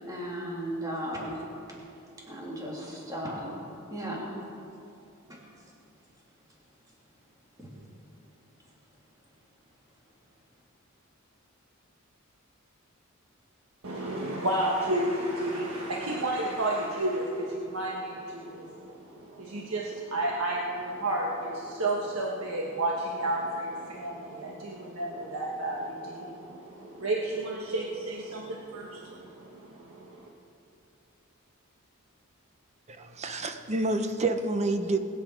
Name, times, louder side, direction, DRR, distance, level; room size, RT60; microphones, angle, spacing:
voice 1, 0.0-1.4 2.3-3.5 3.9-4.2 5.3-5.4 7.6-7.7, equal, 15° right, -4 dB, 2.7 m, -35 dB
voice 2, 13.8-30.3, right 1 dB, 85° right, -2 dB, 1.4 m, -32 dB
voice 3, 32.9-35.0, right 2 dB, 35° right, 7 dB, 0.8 m, -28 dB
20.5 x 9.6 x 4.7 m, 2.7 s
head